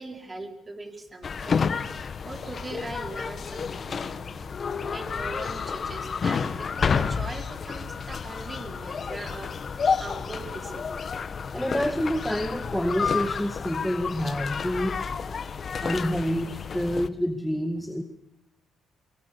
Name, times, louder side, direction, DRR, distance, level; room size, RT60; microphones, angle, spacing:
voice 1, 0.0-11.1, right 2 dB, 20° right, 6 dB, 4.7 m, -41 dB
sound 1, 1.2-17.1, left 6 dB, 45° left, 1.5 m, -30 dB
voice 2, 11.5-15.0 15.8-18.0, equal, 5° left, 8 dB, 2.1 m, -28 dB
23.5 x 23.0 x 6.9 m, 0.85 s
cardioid pair, 90°, 0 cm